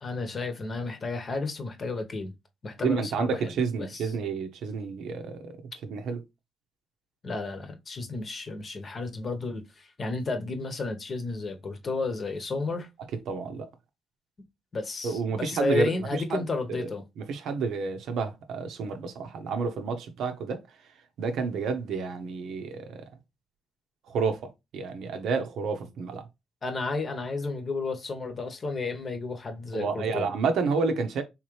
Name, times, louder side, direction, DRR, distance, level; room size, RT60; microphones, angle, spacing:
voice 1, 0.0-2.3 2.6-4.1 7.2-12.9 14.7-17.0 26.6-30.3, left 3 dB, 40° left, 0.9 m, -32 dB
voice 2, 2.8-5.6 5.8-6.2 13.3-13.7 15.0-16.4 16.8-16.9 17.2-20.6 21.2-23.0 24.1-26.2 29.7-31.2, right 5 dB, 75° right, 0.7 m, -30 dB
3.6 x 2.9 x 3.1 m
cardioid pair, 90°, 0 cm